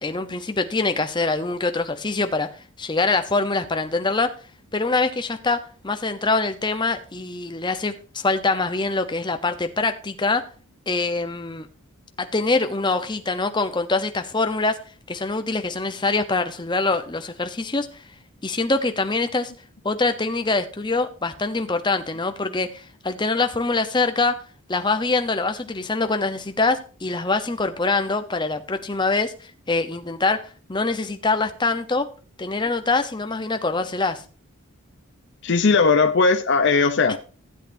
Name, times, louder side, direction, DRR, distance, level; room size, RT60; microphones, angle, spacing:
voice 1, 0.0-2.5 2.8-4.3 4.7-10.5 10.9-11.7 12.2-14.8 15.1-18.0 18.4-19.5 19.8-24.4 24.7-32.1 32.4-34.2, left 3 dB, 20° left, 0.8 m, -24 dB
voice 2, 35.4-37.2, left 4 dB, 55° left, 0.6 m, -18 dB
15.5 x 8.3 x 2.7 m
head